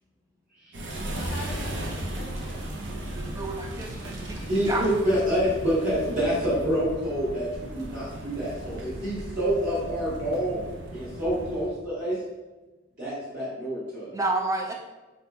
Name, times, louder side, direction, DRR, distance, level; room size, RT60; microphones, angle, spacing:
sound 1, 0.7-11.7, right 1 dB, 65° right, 0.5 m, -36 dB
voice 1, 1.1-2.7 8.6-9.4, left 1 dB, 65° left, -6 dB, 0.6 m, -43 dB
voice 2, 3.1-4.8 14.1-14.7, right 2 dB, 15° right, 1 dB, 0.4 m, -30 dB
voice 3, 4.5-7.5 7.7-10.6 10.9-12.2 13.0-14.1, equal, 45° right, -10 dB, 1.0 m, -27 dB
4.1 x 2.7 x 2.3 m, 1.2 s
head